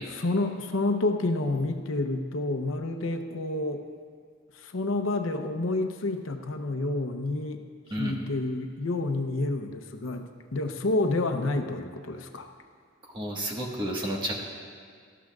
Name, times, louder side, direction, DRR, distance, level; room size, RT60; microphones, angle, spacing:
voice 1, 0.1-3.8 4.5-7.6 8.0-12.5, left 2 dB, 80° left, 6 dB, 0.8 m, -29 dB
voice 2, 13.0-14.4, equal, 25° right, -1 dB, 1.5 m, -31 dB
18.0 x 13.0 x 2.4 m, 2.1 s
head